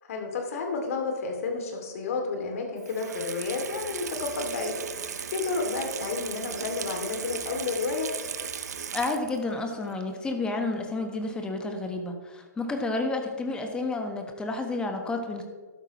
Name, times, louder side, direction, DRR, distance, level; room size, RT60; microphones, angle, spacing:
voice 1, 0.0-8.1, left 4 dB, 50° left, 2 dB, 2.6 m, -31 dB
Water tap faucet / Sink (filling or washing), 2.8-9.5 9.9-10.0, right 7 dB, 60° right, 0.9 m, -37 dB
voice 2, 8.9-15.4, left 2 dB, 10° left, 4 dB, 1.3 m, -30 dB
13.0 x 12.0 x 3.1 m, 1.5 s
figure-of-eight pair, 125°, 10 cm